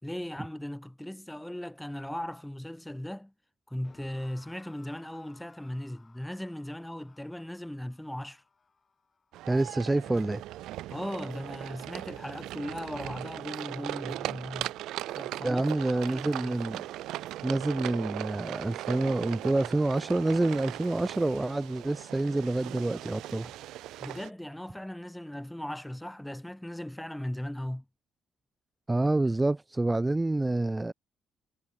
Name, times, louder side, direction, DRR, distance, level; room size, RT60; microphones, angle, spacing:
voice 1, 0.0-3.3 3.7-8.4 10.9-14.7 15.1-16.6 24.0-27.8, left 1 dB, 5° left, 3.0 m, -38 dB
sound 1, 3.8-10.9, left 5 dB, 35° left, 6.9 m, -61 dB
sound 2, 9.3-24.3, right 15 dB, 90° right, 1.9 m, -39 dB
voice 2, 9.5-10.4 15.4-16.9 17.4-23.6 28.9-30.9, right 2 dB, 15° right, 0.6 m, -27 dB
cardioid pair, 90°, 0 cm